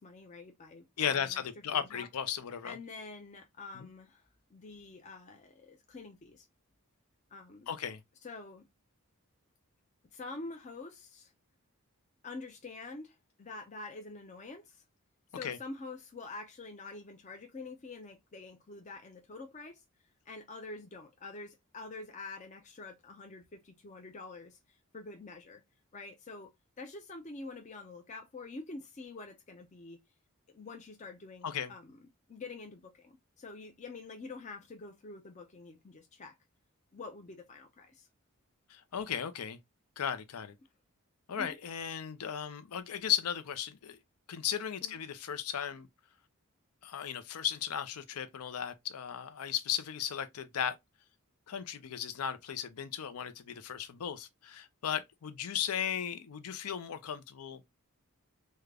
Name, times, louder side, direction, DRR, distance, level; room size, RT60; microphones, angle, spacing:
voice 1, 0.0-1.4 1.7-2.1 2.6-6.5 7.3-7.7 8.2-8.7 10.1-11.3 12.2-14.8 15.3-19.8 20.3-25.6 25.9-30.0 30.5-32.0 32.3-36.4 36.9-38.1 41.4-41.6 44.8-45.0, left 3 dB, 30° left, 0.5 m, -47 dB
voice 2, 1.0-2.8 3.7-3.9 7.7-8.0 15.4-15.6 31.4-31.7 38.7-39.6 40.0-40.5 41.3-44.0 44.3-45.9 46.8-50.8 51.5-57.6, left 9 dB, 85° left, 0.5 m, -36 dB
3.6 x 2.1 x 3.3 m
head